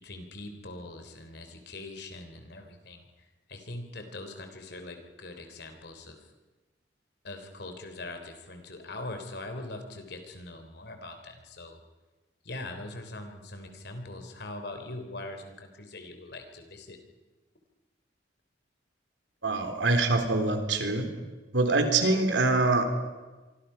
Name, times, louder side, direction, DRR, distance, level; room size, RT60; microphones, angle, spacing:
voice 1, 0.0-3.0 3.5-6.1 7.2-11.8 12.4-17.0, left 2 dB, 65° left, 6 dB, 3.4 m, -42 dB
voice 2, 19.4-21.1 21.5-22.9, right 3 dB, 80° right, 6 dB, 3.4 m, -24 dB
26.5 x 24.0 x 5.7 m, 1.2 s
head